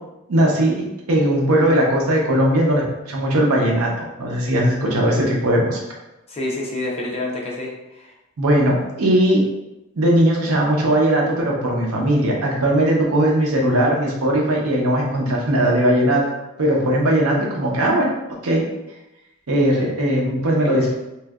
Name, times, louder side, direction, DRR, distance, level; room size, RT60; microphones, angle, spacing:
voice 1, 0.3-5.8 8.4-9.4 10.0-16.2 16.6-18.2 18.4-18.6 19.5-21.0, right 1 dB, 85° right, -1 dB, 0.7 m, -19 dB
voice 2, 6.3-8.1, left 2 dB, 30° left, -3 dB, 0.6 m, -28 dB
3.1 x 2.7 x 2.3 m, 0.95 s
head